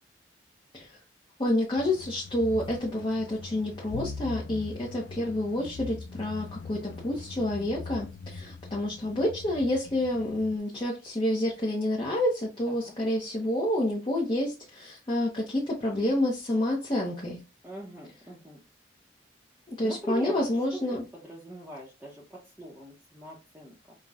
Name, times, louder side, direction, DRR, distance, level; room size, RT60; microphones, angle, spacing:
voice 1, 1.4-17.4 19.8-21.0, left 1 dB, 25° left, 0.7 m, -28 dB
sound 1, 1.8-10.6, left 4 dB, 65° left, 0.4 m, -42 dB
voice 2, 17.6-18.6 19.8-24.0, equal, 10° right, 0.7 m, -42 dB
5.4 x 2.2 x 2.3 m
head